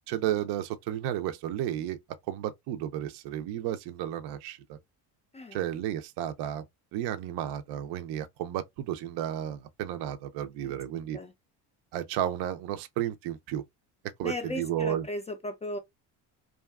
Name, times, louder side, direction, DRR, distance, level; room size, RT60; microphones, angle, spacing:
voice 1, 0.1-2.0 2.3-4.8 5.5-6.6 6.9-11.2 11.9-13.6 14.2-15.0, right 11 dB, 60° right, 0.5 m, -32 dB
voice 2, 14.2-15.8, left 1 dB, 15° left, 0.3 m, -36 dB
2.7 x 2.4 x 2.2 m
cardioid pair, 110°, 45 cm